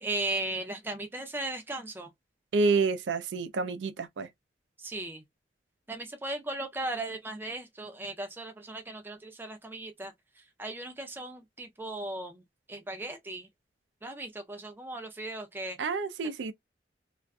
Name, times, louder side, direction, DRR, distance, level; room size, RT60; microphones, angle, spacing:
voice 1, 0.0-2.1 4.8-5.2 5.9-10.1 10.6-12.4 12.7-13.5 14.0-15.8, right 2 dB, 10° right, 0.4 m, -37 dB
voice 2, 2.5-4.3 15.8-16.5, right 4 dB, 85° right, 0.4 m, -28 dB
2.4 x 2.4 x 2.2 m
head